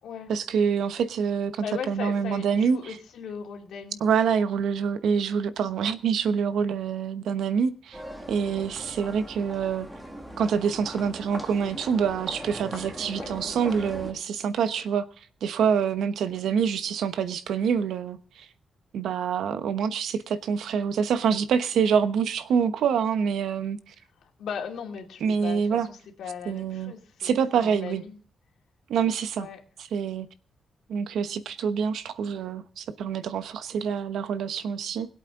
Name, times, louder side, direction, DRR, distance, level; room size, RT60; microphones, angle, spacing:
voice 1, 0.3-2.9 4.0-8.0 8.3-9.9 10.4-15.1 15.4-18.5 18.9-23.9 25.2-25.9 26.5-26.9 27.2-28.0 28.9-29.5 29.9-30.3 30.9-35.1, right 7 dB, 85° right, 1.0 m, -26 dB
voice 2, 1.6-4.0 8.4-8.7 13.2-13.8 24.2-28.2 29.4-29.6, left 7 dB, 85° left, 2.7 m, -38 dB
sound 1, 7.9-14.1, equal, 10° right, 2.0 m, -39 dB
21.0 x 8.3 x 3.8 m
wide cardioid pair, 155°, 0 cm